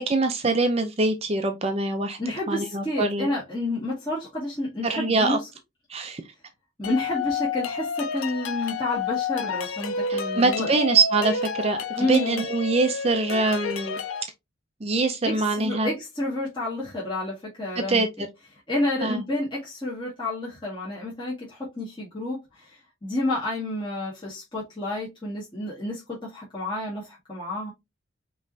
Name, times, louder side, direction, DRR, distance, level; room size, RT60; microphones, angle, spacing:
voice 1, 0.0-2.2 2.5-3.3 4.8-5.4 5.9-6.2 10.1-14.0 14.8-15.9 17.8-18.1 19.0-19.2, right 3 dB, 30° right, 0.5 m, -24 dB
voice 2, 2.2-5.4 6.8-10.8 12.0-12.4 15.2-18.0 18.7-27.7, left 1 dB, 20° left, 1.9 m, -30 dB
sound 1, 6.8-14.2, left 5 dB, 80° left, 0.6 m, -30 dB
5.3 x 3.1 x 2.7 m
head